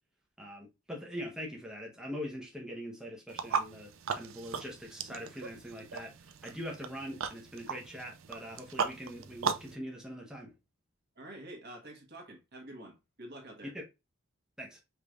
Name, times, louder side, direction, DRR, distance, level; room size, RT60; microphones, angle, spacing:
voice 1, 0.4-10.5 13.6-13.8 14.6-14.8, equal, 5° right, 0.9 m, -43 dB
sound 1, 3.3-9.8, right 6 dB, 65° right, 0.5 m, -37 dB
voice 2, 11.1-13.7, right 1 dB, 50° right, 1.4 m, -48 dB
5.0 x 3.2 x 2.5 m
head